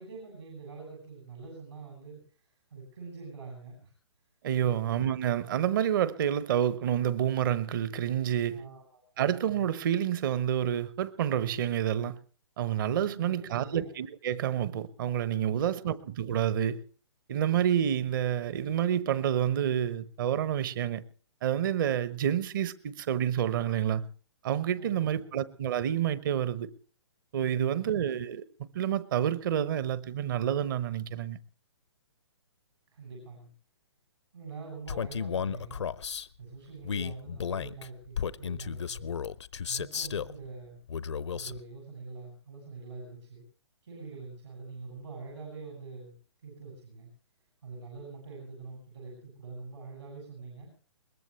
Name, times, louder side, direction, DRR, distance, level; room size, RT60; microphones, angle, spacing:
voice 1, 0.0-2.4 2.7-3.9 8.5-9.3 13.0-13.9 15.5-15.9 24.8-25.4 32.9-33.5 34.3-35.9 36.4-39.1 39.6-40.8 41.3-43.4 43.8-46.1 46.4-47.1 47.6-50.7, right 4 dB, 75° right, 7.8 m, -45 dB
voice 2, 4.4-8.6 9.2-12.2 12.6-16.8 17.3-21.0 21.4-24.1 24.4-26.7 27.3-28.4 28.7-31.4, right 10 dB, 45° right, 1.1 m, -28 dB
Male speech man speaking, 34.9-36.3 36.8-40.4 40.9-41.6, left 7 dB, 75° left, 0.7 m, -34 dB
22.0 x 19.5 x 3.3 m
figure-of-eight pair, 130°, 15 cm